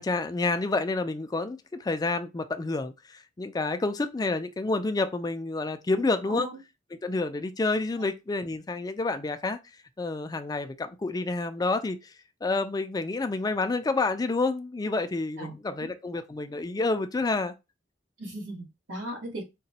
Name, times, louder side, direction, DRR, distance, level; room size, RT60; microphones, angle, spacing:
voice 1, 0.0-6.5 7.0-9.6 10.0-12.1 12.4-17.5, left 3 dB, 20° left, 0.3 m, -29 dB
voice 2, 5.9-6.6 8.0-8.1 15.4-15.7 18.2-19.4, right 1 dB, 90° right, 1.4 m, -38 dB
3.9 x 2.2 x 2.8 m
head